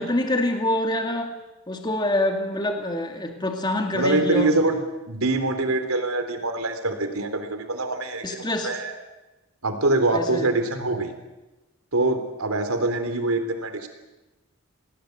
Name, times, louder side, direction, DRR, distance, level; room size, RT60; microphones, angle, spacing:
voice 1, 0.0-1.4 1.7-4.5 8.2-8.7 10.1-10.5, left 1 dB, 20° left, 4 dB, 2.2 m, -25 dB
voice 2, 3.9-4.8 5.1-8.9 9.6-11.1 11.9-13.9, right 2 dB, 85° right, 7 dB, 3.6 m, -24 dB
28.0 x 18.5 x 8.1 m, 1.1 s
head